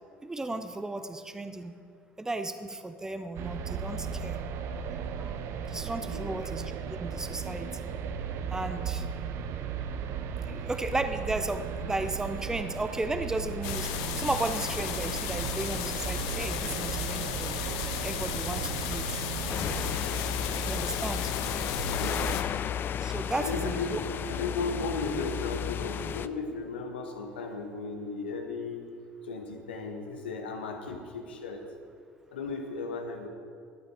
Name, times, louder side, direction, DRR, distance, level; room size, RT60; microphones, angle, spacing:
voice 1, 0.2-1.8 2.2-4.4 4.9-5.4 5.7-7.9 8.5-9.0 10.5-17.6 18.0-19.2 20.6-21.3 23.0-24.0, right 2 dB, 10° right, 9 dB, 0.7 m, -34 dB
sound 1, 3.4-22.4, right 6 dB, 55° right, 0.8 m, -36 dB
voice 2, 6.0-6.4 21.8-22.6 23.4-24.0 24.3-28.9 29.2-31.7 32.3-33.3, left 3 dB, 85° left, 3 dB, 1.2 m, -36 dB
sound 2, 13.6-22.4, left 10 dB, 65° left, 0.8 m, -35 dB
sound 3, 19.5-26.3, left 9 dB, 40° left, 0.4 m, -33 dB
14.0 x 9.1 x 4.8 m, 2.3 s
hypercardioid pair, 70°, 5 cm